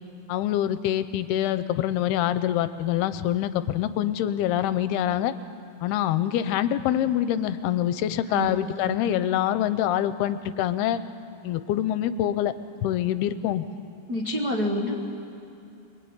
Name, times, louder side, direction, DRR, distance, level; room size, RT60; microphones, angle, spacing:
voice 1, 0.3-5.3 5.8-11.0 11.4-12.5 12.8-13.7, left 11 dB, 80° left, 12 dB, 2.6 m, -25 dB
voice 2, 8.3-9.0 14.1-14.9, equal, 70° right, 1 dB, 0.9 m, -28 dB
24.0 x 22.0 x 9.6 m, 2.7 s
omnidirectional pair, 4.7 m